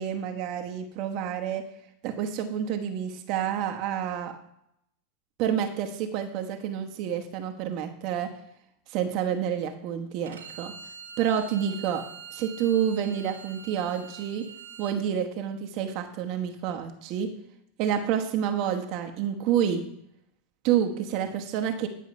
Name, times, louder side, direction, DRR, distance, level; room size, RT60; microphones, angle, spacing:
voice 1, 0.0-1.6 2.0-4.4 5.4-8.3 8.9-10.8 11.2-14.5 14.8-17.3 17.8-19.8 20.6-21.9, right 9 dB, 55° right, 5 dB, 1.1 m, -28 dB
Bowed string instrument, 10.3-15.0, right 6 dB, 85° right, 1.4 m, -44 dB
10.0 x 5.6 x 5.3 m, 0.76 s
hypercardioid pair, 100°, 0 cm